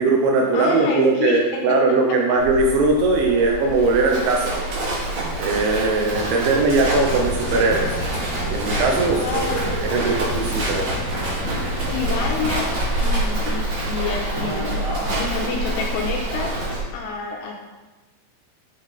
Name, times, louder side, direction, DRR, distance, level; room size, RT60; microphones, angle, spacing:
voice 1, 0.0-4.5 5.4-7.9 8.5-10.9, right 3 dB, 80° right, 0 dB, 2.8 m, -20 dB
voice 2, 0.5-1.8 2.3-2.4 6.4-6.5 9.1-9.9 11.9-14.8 15.1-16.5 16.9-17.6, left 5 dB, 80° left, 0 dB, 2.9 m, -28 dB
Livestock farm animals working animals, 2.4-16.8, right 1 dB, 50° right, 2.4 m, -26 dB
sound 1, 7.0-12.5, equal, 50° left, 1.1 m, -32 dB
10.0 x 3.9 x 5.1 m, 1.2 s
omnidirectional pair, 5.9 m